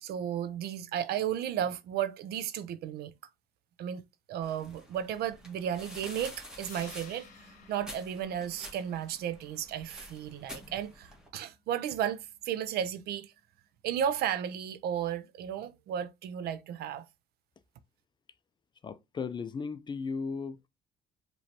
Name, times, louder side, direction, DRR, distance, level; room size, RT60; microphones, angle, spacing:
voice 1, 0.0-3.1 3.8-13.3 13.8-17.1, right 9 dB, 70° right, 0.6 m, -34 dB
sound 1, 4.4-11.3, equal, 5° right, 1.6 m, -49 dB
sound 2, 6.6-12.6, left 5 dB, 50° left, 1.1 m, -56 dB
voice 2, 18.8-20.7, left 5 dB, 25° left, 0.4 m, -36 dB
5.0 x 3.1 x 2.8 m
cardioid pair, 110°, 17 cm